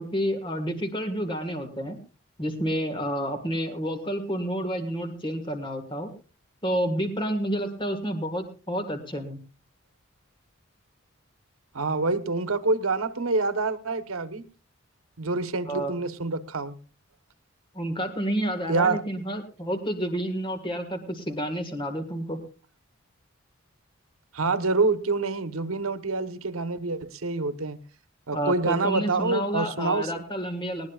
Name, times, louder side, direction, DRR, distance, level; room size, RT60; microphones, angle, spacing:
voice 1, 0.0-2.0 2.4-6.1 6.6-9.4 15.7-15.9 17.7-22.4 28.3-30.9, equal, 25° left, 6 dB, 1.7 m, -29 dB
voice 2, 11.7-14.4 15.2-16.8 18.7-19.0 24.3-27.8 28.3-30.3, right 3 dB, 85° right, 11 dB, 1.1 m, -26 dB
19.5 x 18.5 x 2.4 m, 0.35 s
head